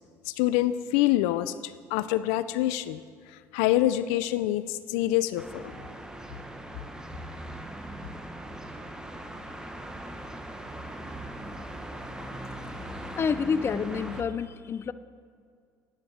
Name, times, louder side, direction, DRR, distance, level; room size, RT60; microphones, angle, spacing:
voice 1, 0.3-3.0 3.5-5.6, left 14 dB, 85° left, 14 dB, 0.4 m, -26 dB
sound 1, 5.4-14.2, right 1 dB, 10° right, 1.2 m, -40 dB
voice 2, 13.2-14.9, left 6 dB, 35° left, 14 dB, 0.5 m, -28 dB
9.7 x 9.6 x 7.3 m, 2.1 s
supercardioid pair, 85°, 7 cm